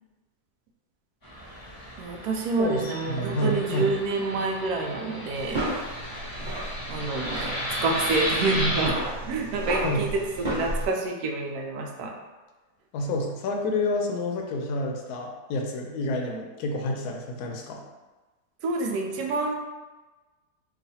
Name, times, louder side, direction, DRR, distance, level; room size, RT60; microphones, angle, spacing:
Fixed-wing aircraft airplane, 1.2-8.9, left 1 dB, 35° left, 0.3 m, -34 dB
voice 1, 2.0-5.6 6.9-7.5 7.8-12.1 18.6-19.5, right 3 dB, 75° right, 1 dB, 1.1 m, -28 dB
voice 2, 2.6-3.9 9.8-10.0 12.9-17.8, left 1 dB, 75° left, 1 dB, 1.0 m, -29 dB
sound 1, 5.3-10.9, right 1 dB, 30° right, 1.3 m, -33 dB
3.1 x 2.4 x 4.0 m, 1.2 s
omnidirectional pair, 1.7 m